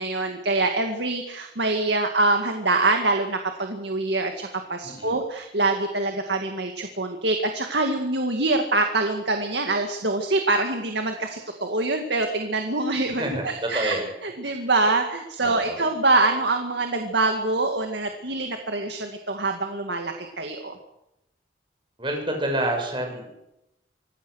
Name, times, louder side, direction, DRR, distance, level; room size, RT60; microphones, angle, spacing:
voice 1, 0.0-14.0 14.2-20.8, right 2 dB, 70° right, 4 dB, 2.1 m, -25 dB
voice 2, 4.8-5.2 13.2-14.1 14.4-14.6 15.4-15.9 22.0-23.3, right 1 dB, 25° right, 3 dB, 6.4 m, -29 dB
25.5 x 19.0 x 6.5 m, 0.88 s
head